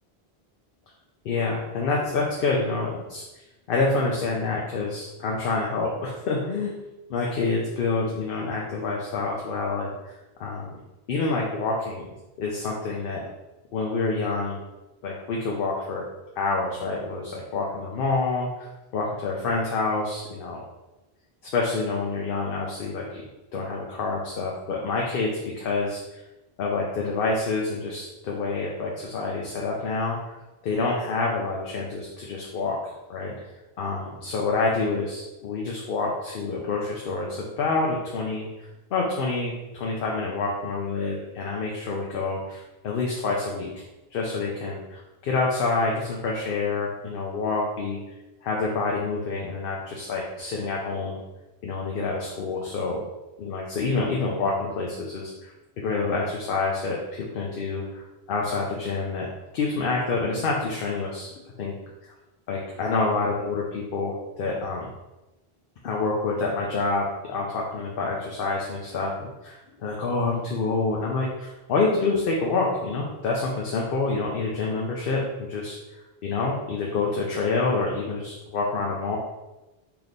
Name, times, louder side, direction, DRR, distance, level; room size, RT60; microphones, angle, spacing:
voice 1, 1.2-3.2 3.7-6.8 7.1-10.1 10.4-10.8 11.1-12.1 12.4-13.2 13.7-14.6 15.0-16.0 16.4-20.6 21.5-23.3 23.5-26.2 26.6-30.4 30.6-32.8 33.1-33.3 33.8-38.5 38.9-43.7 44.1-48.0 48.4-51.2 51.6-53.0 53.4-58.0 58.3-59.3 59.5-61.7 62.5-64.9 65.8-75.8 76.2-79.2, left 3 dB, 65° left, -2 dB, 0.8 m, -27 dB
3.2 x 2.9 x 4.0 m, 1.0 s
omnidirectional pair, 1.1 m